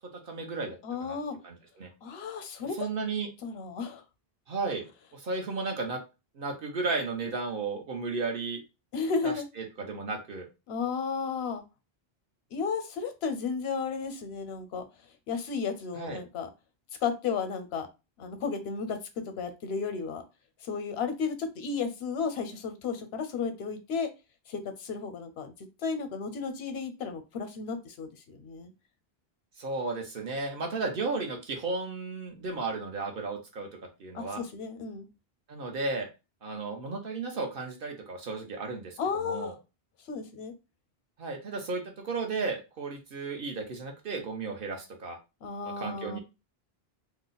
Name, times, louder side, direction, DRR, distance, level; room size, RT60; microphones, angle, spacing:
voice 1, 0.2-1.2 1.4-1.9 2.8-3.3 4.5-6.0 6.3-8.6 9.2-10.5 15.9-16.2 29.6-33.7 34.0-34.4 35.5-36.1 36.4-39.5 41.2-45.2 45.6-46.2, right 3 dB, 65° right, 3 dB, 1.0 m, -34 dB
voice 2, 0.8-1.4 2.0-2.8 3.4-4.0 8.9-9.5 10.7-11.6 12.5-14.8 15.3-16.5 17.0-17.9 18.2-19.0 19.4-20.2 20.6-24.1 24.5-25.5 25.8-28.7 34.1-35.1 39.0-39.5 40.1-40.5 45.4-46.2, left 5 dB, 85° left, 8 dB, 0.9 m, -33 dB
2.8 x 2.1 x 3.8 m, 0.27 s
omnidirectional pair, 1.0 m